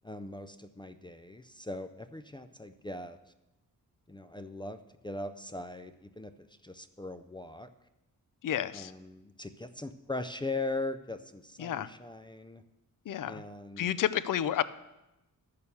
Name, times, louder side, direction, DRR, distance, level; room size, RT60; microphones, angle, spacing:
voice 1, 0.0-3.2 4.1-7.7 8.7-12.6 13.3-13.9, left 2 dB, 15° left, 9 dB, 0.4 m, -40 dB
voice 2, 8.4-8.9 11.6-11.9 13.1-13.4 13.8-14.6, left 10 dB, 65° left, 16 dB, 0.5 m, -30 dB
12.0 x 6.6 x 6.9 m, 0.96 s
wide cardioid pair, 160°, 35 cm